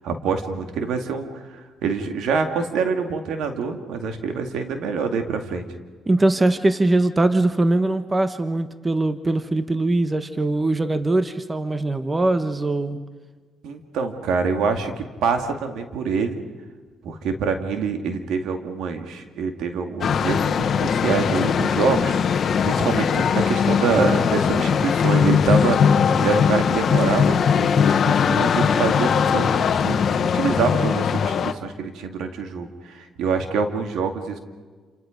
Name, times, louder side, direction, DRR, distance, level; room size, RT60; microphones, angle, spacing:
voice 1, 0.0-5.7 13.6-14.9 15.2-16.4 17.0-25.8 26.2-34.4, right 5 dB, 85° right, 5 dB, 2.3 m, -25 dB
voice 2, 6.1-13.0, right 2 dB, 20° right, 10 dB, 1.1 m, -21 dB
sound 1, 20.0-31.5, left 7 dB, 55° left, 1.2 m, -20 dB
28.5 x 28.0 x 5.2 m, 1.4 s
cardioid pair, 90°, 0 cm